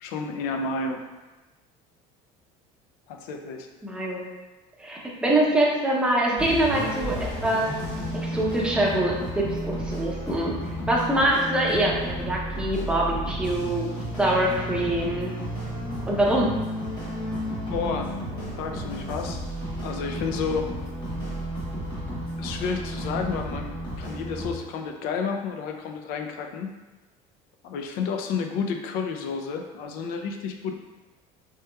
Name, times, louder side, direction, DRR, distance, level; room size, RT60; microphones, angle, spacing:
voice 1, 0.0-1.0 3.1-3.7 17.7-18.1 18.5-19.4 19.8-20.7 22.4-26.7 27.6-30.7, left 5 dB, 70° left, 4 dB, 0.4 m, -31 dB
voice 2, 3.8-4.2 4.8-7.7 8.1-10.5 10.9-15.3 16.1-16.5, right 1 dB, 5° right, -4 dB, 0.6 m, -24 dB
sound 1, 6.4-24.5, equal, 25° left, 1.3 m, -32 dB
3.2 x 3.0 x 2.2 m, 1.1 s
cardioid pair, 135°, 16 cm